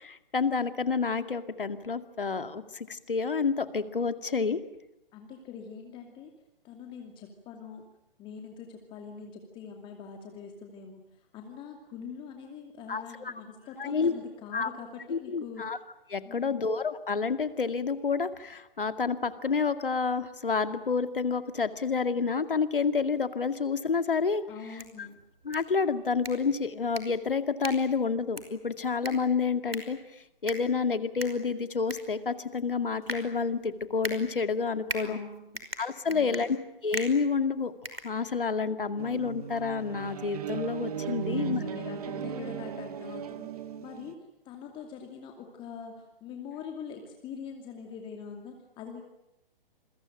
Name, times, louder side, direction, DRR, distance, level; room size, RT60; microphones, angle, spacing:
voice 1, 0.0-4.6 12.9-13.3 13.8-14.1 14.5-14.7 15.1-15.8 16.1-24.4 25.0-25.1 25.4-30.0 30.4-35.2 35.8-36.6 36.8-37.7 38.0-41.6, left 5 dB, 65° left, 10 dB, 2.3 m, -29 dB
voice 2, 5.1-6.3 6.6-7.9 8.2-15.6 16.2-16.6 24.5-25.2 35.0-35.6 36.1-36.4 41.1-43.5 43.8-49.0, left 6 dB, 15° left, 3 dB, 2.6 m, -43 dB
sound 1, 24.6-38.7, right 1 dB, 85° right, 5.3 m, -42 dB
sound 2, 39.0-44.1, right 8 dB, 40° right, 1.7 m, -37 dB
28.0 x 23.0 x 8.9 m, 0.86 s
figure-of-eight pair, 130°, 29 cm